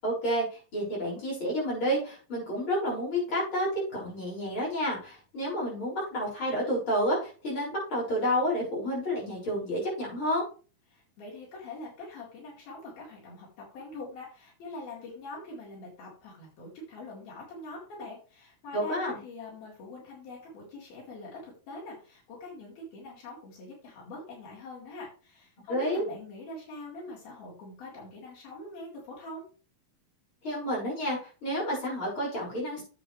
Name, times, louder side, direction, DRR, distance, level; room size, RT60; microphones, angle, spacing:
voice 1, 0.0-10.4 18.7-19.2 25.7-26.0 30.4-32.8, equal, 35° left, -4 dB, 6.9 m, -30 dB
voice 2, 10.9-29.4, left 2 dB, 90° left, -5 dB, 6.3 m, -43 dB
10.5 x 8.3 x 3.3 m, 0.36 s
omnidirectional pair, 4.1 m